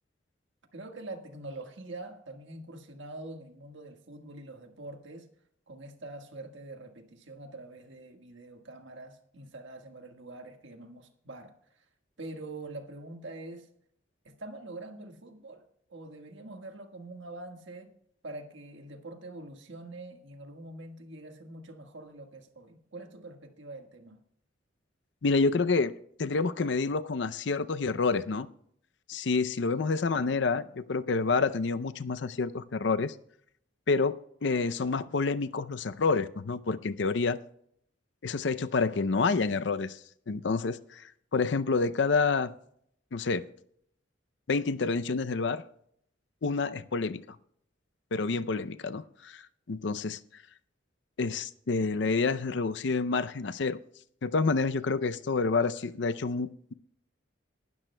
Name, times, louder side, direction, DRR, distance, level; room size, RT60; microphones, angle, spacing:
voice 1, 0.7-5.3 5.7-11.9 12.2-13.7 14.2-17.9 18.2-24.2, right 2 dB, 75° right, 1.5 m, -45 dB
voice 2, 25.2-25.9 26.2-28.5 29.1-33.1 33.9-34.2 34.4-37.4 38.2-40.0 40.3-42.5 43.1-43.5 44.5-45.6 46.4-47.4 48.1-50.4 51.2-53.8 54.2-56.7, left 4 dB, 65° left, 0.5 m, -28 dB
19.0 x 12.5 x 2.2 m
head